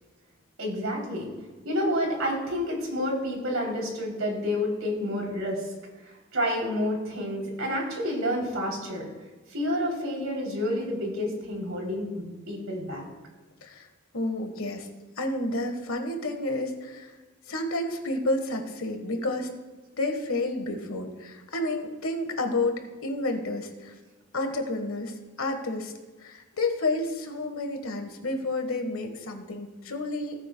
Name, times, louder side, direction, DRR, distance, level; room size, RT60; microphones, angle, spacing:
voice 1, 0.6-1.3 1.6-5.7 6.0-9.0 9.5-13.0, left 1 dB, 80° right, -1 dB, 3.2 m, -29 dB
voice 2, 14.1-14.9 15.2-17.1 17.5-19.5 20.0-23.9 24.3-25.9 26.2-30.4, left 2 dB, 90° left, 5 dB, 1.4 m, -30 dB
17.5 x 8.8 x 2.3 m, 1.2 s
head